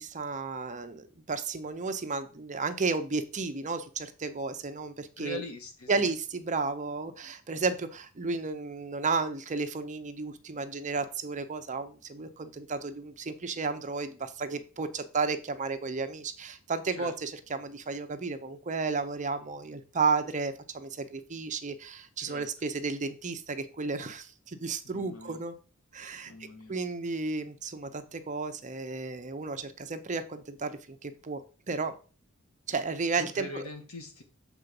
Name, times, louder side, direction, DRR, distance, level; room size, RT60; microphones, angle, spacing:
voice 1, 0.0-5.4 5.9-25.5 25.9-26.3 26.7-31.9 32.7-33.6, right 4 dB, 35° right, 9 dB, 0.7 m, -33 dB
voice 2, 5.2-6.1 17.0-17.1 22.2-22.5 24.8-25.4 26.3-26.8 33.2-34.2, left 1 dB, 80° left, 5 dB, 1.6 m, -42 dB
7.2 x 3.9 x 5.3 m, 0.35 s
head